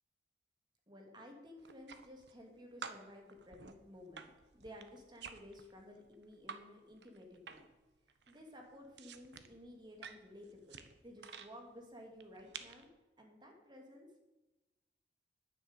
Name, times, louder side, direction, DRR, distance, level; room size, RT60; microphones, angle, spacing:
voice 1, 0.9-7.7 8.3-12.9 13.2-14.1, left 1 dB, 25° right, 2 dB, 2.5 m, -54 dB
sound 1, 1.6-2.5 2.8-6.6 6.9-7.8 8.1-11.5 12.2-12.8, right 6 dB, 80° right, 1.1 m, -51 dB
10.5 x 9.9 x 8.1 m, 1.1 s
head